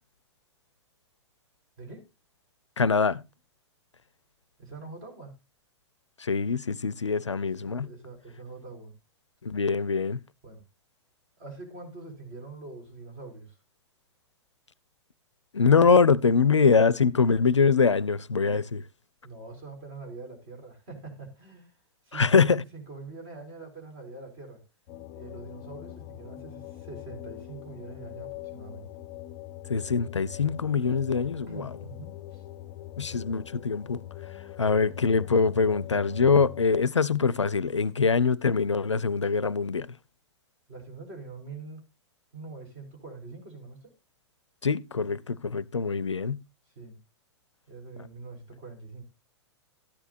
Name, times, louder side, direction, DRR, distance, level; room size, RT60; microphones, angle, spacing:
voice 1, 1.8-2.1 4.6-5.3 7.6-8.9 10.4-10.6 11.4-13.6 19.2-21.8 22.0-24.6 25.2-28.9 31.5-32.4 40.7-41.9 42.3-43.9 46.7-47.0 47.7-49.0, right 3 dB, 35° right, 4.3 m, -44 dB
voice 2, 2.8-3.2 6.2-7.9 9.4-10.2 15.5-18.8 22.1-22.6 29.7-31.7 33.0-34.0 34.6-39.9 44.6-46.4, left 5 dB, 80° left, 0.5 m, -23 dB
sound 1, 24.9-36.8, left 13 dB, 30° left, 0.5 m, -42 dB
13.5 x 10.0 x 2.5 m
figure-of-eight pair, 105°, 15 cm